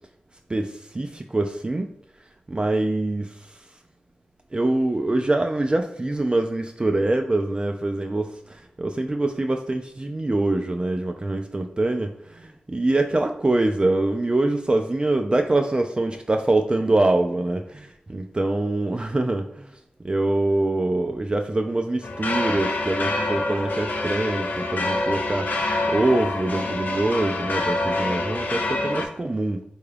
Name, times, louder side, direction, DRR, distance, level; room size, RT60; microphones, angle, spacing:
voice 1, 0.5-1.9 2.5-3.6 4.5-19.8 20.0-25.5 25.9-29.6, right 2 dB, 30° right, 4 dB, 0.3 m, -24 dB
sound 1, 22.0-29.1, left 2 dB, 65° left, 0.5 m, -26 dB
3.6 x 2.3 x 3.3 m, 0.74 s
cardioid pair, 45°, 3 cm